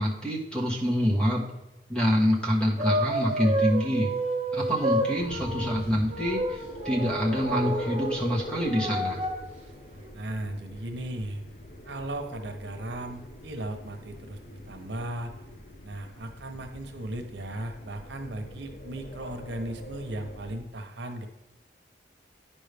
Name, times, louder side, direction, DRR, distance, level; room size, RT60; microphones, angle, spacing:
voice 1, 0.0-1.4 1.9-4.1 4.5-6.6 6.8-9.2, equal, 5° left, -2 dB, 1.3 m, -26 dB
sound 1, 2.8-5.8 6.1-8.2 8.4-9.4 10.0-10.1, right 1 dB, 35° right, 1.1 m, -30 dB
sound 2, 5.1-20.6, left 1 dB, 45° left, 0.7 m, -42 dB
voice 2, 10.1-11.4 11.8-15.3 15.8-21.3, right 1 dB, 90° right, 4 dB, 0.9 m, -36 dB
9.8 x 5.4 x 3.4 m, 0.99 s
head